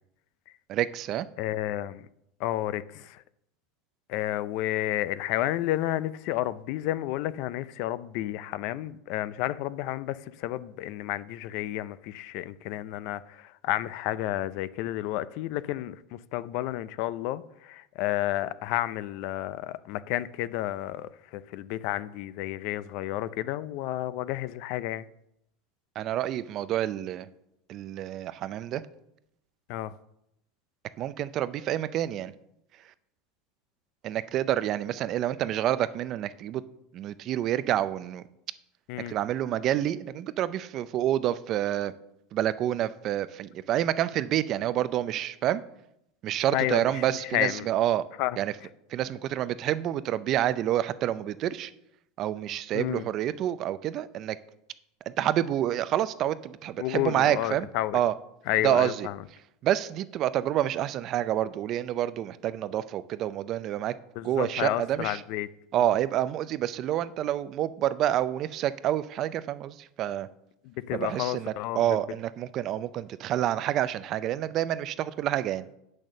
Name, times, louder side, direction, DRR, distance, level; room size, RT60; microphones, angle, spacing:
voice 1, 0.7-1.3 26.0-27.3 27.7-28.8 31.0-32.3 34.0-36.6 36.9-38.2 39.1-41.9 42.3-45.6 46.2-48.0 48.4-48.5 48.9-51.7 52.2-54.4 55.1-57.7 57.9-58.1 58.6-59.1 59.6-64.0 64.2-65.2 65.7-70.3 70.9-75.7, right 12 dB, 35° right, 0.4 m, -28 dB
voice 2, 1.4-2.1 2.4-3.2 4.1-25.0 29.7-29.9 38.9-39.1 46.5-47.7 48.2-48.7 52.7-53.1 56.8-58.0 58.5-59.2 64.2-65.5 70.6-72.0, left 14 dB, 55° left, 0.4 m, -31 dB
8.7 x 6.4 x 6.4 m
supercardioid pair, 150°, 0 cm